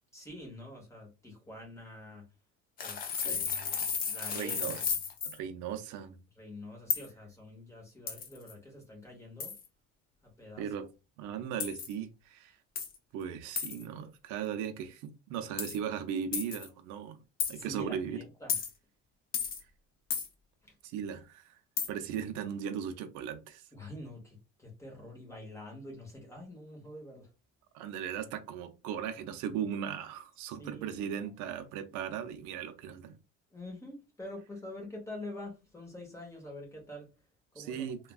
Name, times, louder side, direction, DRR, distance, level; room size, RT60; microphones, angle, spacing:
voice 1, 0.1-2.2 2.8-4.8 6.4-9.5 10.2-10.7 17.5-18.6 20.6-20.7 23.7-27.3 30.5-31.1 33.5-37.1 37.5-37.9, left 1 dB, 10° left, 0.9 m, -46 dB
sound 1, 2.8-5.4 6.9-7.1 8.1-8.5 9.4-9.7 11.6-11.9 12.8-13.0 13.6-13.8 15.6-15.8 16.3-16.7 17.4-17.6 18.5-18.7 19.3-19.6 20.1-20.3 21.8-21.9, left 6 dB, 30° left, 0.5 m, -33 dB
voice 2, 4.3-4.8 5.2-6.2 10.6-10.9 11.2-12.6 13.1-17.2 17.5-18.2 20.8-21.5 21.9-23.6 27.7-33.2 37.6-38.0, right 8 dB, 80° right, 0.6 m, -37 dB
3.3 x 2.2 x 2.3 m
cardioid pair, 165°, 29 cm